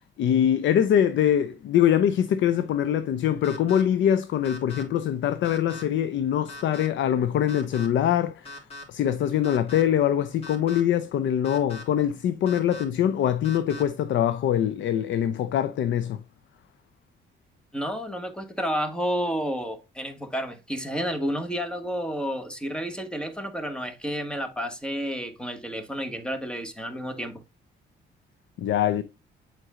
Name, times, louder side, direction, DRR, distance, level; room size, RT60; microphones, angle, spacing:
voice 1, 0.2-16.2 28.6-29.0, left 10 dB, 70° left, 0.6 m, -23 dB
sound 1, 3.4-3.8 4.4-4.8 5.4-5.8 6.5-6.9 7.5-7.9 8.4-8.8 9.4-9.8 10.4-10.8 11.4-11.8 12.5-12.8 13.4-13.8, left 2 dB, 30° left, 2.9 m, -40 dB
voice 2, 17.7-27.4, equal, 5° left, 1.5 m, -31 dB
8.0 x 4.5 x 3.7 m
cardioid pair, 90°, 20 cm